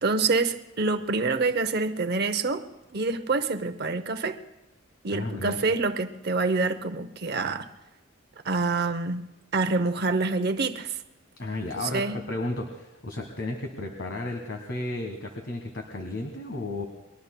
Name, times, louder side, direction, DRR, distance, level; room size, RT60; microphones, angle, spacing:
voice 1, 0.0-2.7 2.9-4.4 5.0-7.7 8.4-9.2 9.5-11.0 11.8-12.2, right 3 dB, 50° right, 9 dB, 0.7 m, -26 dB
voice 2, 5.1-5.7 11.4-16.8, left 2 dB, 60° left, 3 dB, 1.5 m, -33 dB
29.5 x 21.5 x 2.2 m, 0.99 s
head